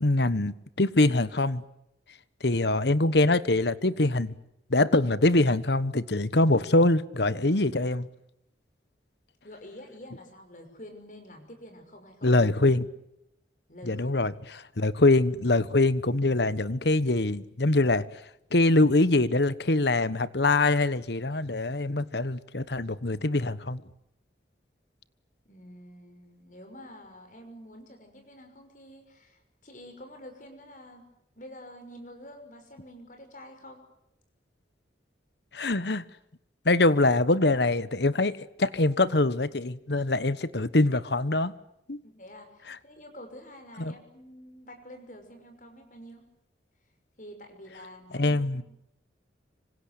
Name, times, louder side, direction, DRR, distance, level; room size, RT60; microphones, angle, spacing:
voice 1, 0.0-1.6 2.4-4.4 4.7-8.1 12.2-12.9 13.9-18.2 18.5-23.8 35.5-36.0 36.6-41.5 41.9-42.0 42.7-42.8 43.8-43.9 48.1-48.6, left 2 dB, 65° left, 1.2 m, -24 dB
voice 2, 9.4-12.5 13.7-14.1 25.5-31.0 31.3-33.8 42.0-46.2 47.2-48.6, equal, 45° left, 6.0 m, -48 dB
26.0 x 25.5 x 8.3 m
head